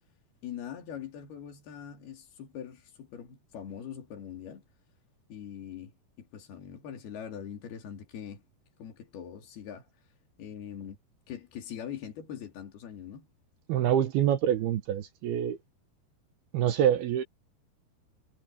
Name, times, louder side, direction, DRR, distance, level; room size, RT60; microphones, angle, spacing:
voice 1, 0.4-4.7 5.3-5.9 6.2-8.4 8.8-9.9 10.4-11.0 11.3-13.3, left 8 dB, 70° left, 4.8 m, -42 dB
voice 2, 13.7-15.6 16.5-17.2, right 10 dB, 75° right, 3.1 m, -26 dB
omnidirectional pair, 4.7 m